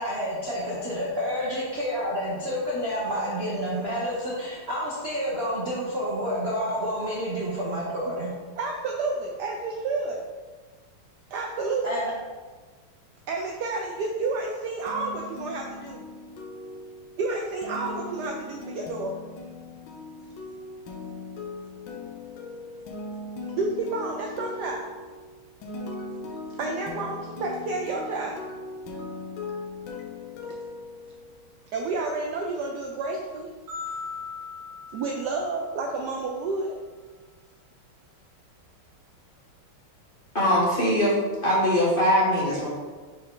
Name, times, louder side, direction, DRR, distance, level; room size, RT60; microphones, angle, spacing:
voice 1, 0.0-8.3 11.8-12.1, equal, 50° right, -6 dB, 0.7 m, -29 dB
voice 2, 8.6-10.2 11.3-12.0 13.3-16.0 17.2-19.2 23.6-25.0 26.6-28.5 30.4-30.6 31.7-33.5 34.9-36.8, right 3 dB, 85° right, 1 dB, 0.9 m, -30 dB
sound 1, 14.9-31.6, left 3 dB, 70° left, 1.4 m, -39 dB
sound 2, 33.7-36.0, left 5 dB, 30° right, 2.2 m, -39 dB
voice 3, 40.3-41.2 41.4-42.7, equal, 30° left, -7 dB, 1.1 m, -21 dB
5.6 x 4.5 x 3.7 m, 1.4 s
omnidirectional pair, 2.4 m